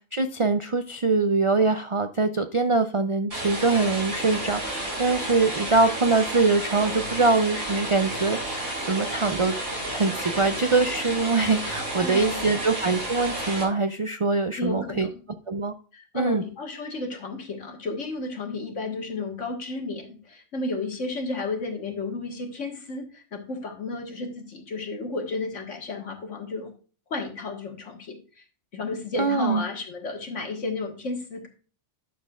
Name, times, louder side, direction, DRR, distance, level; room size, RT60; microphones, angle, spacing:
voice 1, 0.1-8.6 8.9-9.6 9.9-15.1 15.5-15.7 16.1-16.4 29.2-29.6, right 3 dB, 50° right, 8 dB, 0.3 m, -23 dB
sound 1, 3.3-13.6, right 1 dB, 80° right, 5.6 m, -31 dB
voice 2, 12.0-12.6 14.6-15.1 15.9-26.7 27.1-28.2 28.7-31.5, left 3 dB, 75° left, 3 dB, 2.0 m, -32 dB
11.0 x 7.1 x 2.4 m, 0.37 s
omnidirectional pair, 1.3 m